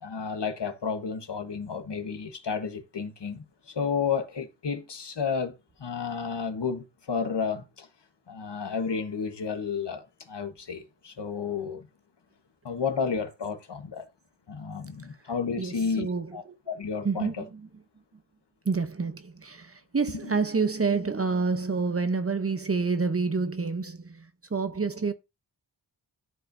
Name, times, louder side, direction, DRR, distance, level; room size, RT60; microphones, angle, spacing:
voice 1, 0.0-5.5 5.8-7.9 8.3-11.9 12.6-14.1 14.5-17.4 20.2-20.3, left 6 dB, 65° left, 1.4 m, -32 dB
voice 2, 15.6-16.5 17.0-17.7 18.7-25.1, right 4 dB, 30° right, 0.8 m, -28 dB
13.0 x 4.4 x 2.7 m
cardioid pair, 55°, 44 cm